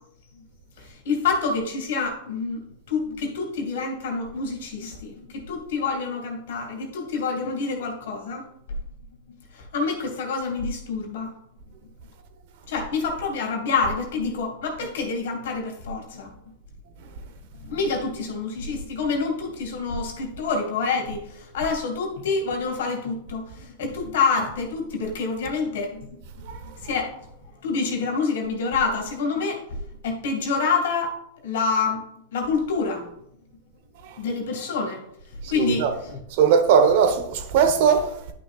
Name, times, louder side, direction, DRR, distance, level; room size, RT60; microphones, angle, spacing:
voice 1, 0.8-8.5 9.5-11.3 12.7-16.3 17.6-26.2 26.8-27.2 27.6-29.6 30.0-31.2 31.4-32.0 32.3-33.1 34.2-35.0 35.5-36.2, left 4 dB, 75° left, 2.1 m, -27 dB
voice 2, 35.6-35.9 36.3-38.3, right 7 dB, 60° right, 1.1 m, -19 dB
11.0 x 6.0 x 2.4 m
hypercardioid pair, 115°, 0 cm